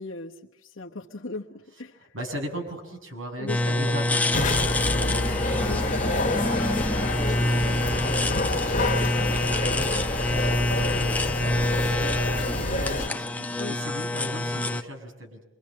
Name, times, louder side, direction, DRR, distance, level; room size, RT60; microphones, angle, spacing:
voice 1, 0.0-2.1 3.4-4.0 5.6-5.8 13.6-13.8, left 2 dB, 80° left, -3 dB, 1.3 m, -37 dB
voice 2, 2.1-8.5 9.2-11.9 12.4-15.4, equal, 80° right, 3 dB, 6.9 m, -38 dB
sound 1, 3.5-14.8, left 1 dB, 10° left, 0.9 m, -26 dB
sound 2, 4.3-13.1, left 2 dB, 40° left, 2.0 m, -28 dB
27.0 x 24.0 x 7.5 m, 0.94 s
head